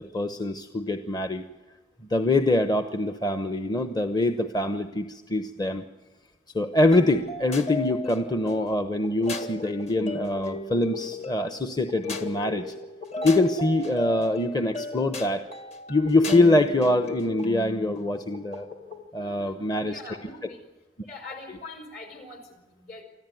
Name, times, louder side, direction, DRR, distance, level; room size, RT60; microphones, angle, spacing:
voice 1, 0.0-1.4 2.1-5.8 6.5-12.7 13.2-15.4 15.9-18.7 19.1-20.0, left 2 dB, 25° left, 8 dB, 0.9 m, -24 dB
sound 1, 6.9-19.1, left 2 dB, 40° left, 1.7 m, -36 dB
voice 2, 19.2-20.6 21.0-23.0, left 2 dB, 60° left, 5 dB, 5.5 m, -43 dB
25.5 x 14.0 x 9.2 m, 1.1 s
head